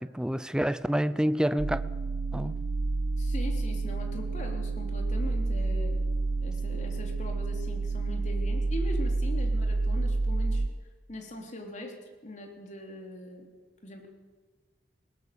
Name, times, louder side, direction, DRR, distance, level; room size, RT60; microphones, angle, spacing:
voice 1, 0.0-1.8 2.3-2.5, equal, 5° right, 14 dB, 0.5 m, -28 dB
sound 1, 1.6-10.7, right 3 dB, 60° right, 0.6 m, -29 dB
voice 2, 3.2-6.1 6.4-10.7 11.1-13.5 13.8-14.1, left 1 dB, 40° left, 3 dB, 3.4 m, -41 dB
20.5 x 18.5 x 6.9 m, 1.4 s
head